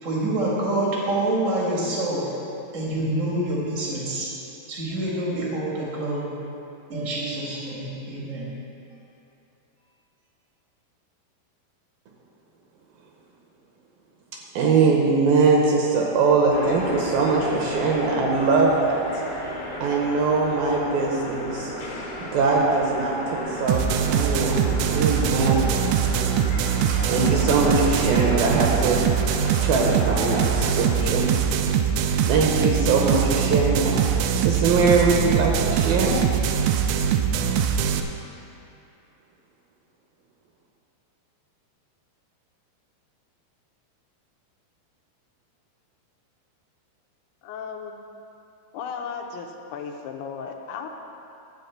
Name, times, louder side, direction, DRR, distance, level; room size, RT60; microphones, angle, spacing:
voice 1, 0.0-2.3 2.7-4.3 4.7-6.3 6.9-8.4, right 1 dB, 45° right, -5 dB, 0.9 m, -26 dB
voice 2, 14.6-19.0 19.8-21.7 22.2-23.8 24.1-25.7 26.9-29.0 29.6-31.3 32.3-34.0 34.4-36.2, right 4 dB, 75° right, -1 dB, 2.4 m, -22 dB
sound 1, 16.5-31.0, left 2 dB, 55° left, 1.7 m, -34 dB
sound 2, 23.7-38.0, right 8 dB, 90° right, 2.7 m, -22 dB
voice 3, 47.4-47.9 48.7-50.9, left 6 dB, 80° left, 3 dB, 2.7 m, -35 dB
12.0 x 4.3 x 8.1 m, 2.8 s
omnidirectional pair, 4.7 m